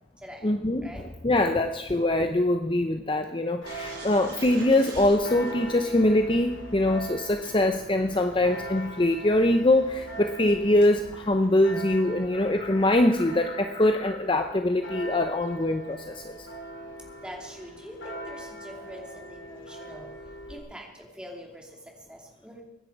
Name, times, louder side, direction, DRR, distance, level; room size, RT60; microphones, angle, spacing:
voice 1, 0.4-16.5, left 1 dB, 25° left, 7 dB, 0.7 m, -23 dB
Church bell, 3.6-20.6, right 1 dB, 85° left, 3.0 m, -42 dB
sound 1, 3.6-12.9, right 3 dB, 55° right, 3.9 m, -50 dB
voice 2, 17.2-20.1 20.5-21.7 22.1-22.6, equal, 5° right, 0 dB, 2.6 m, -44 dB
23.5 x 10.0 x 4.7 m, 1.0 s
head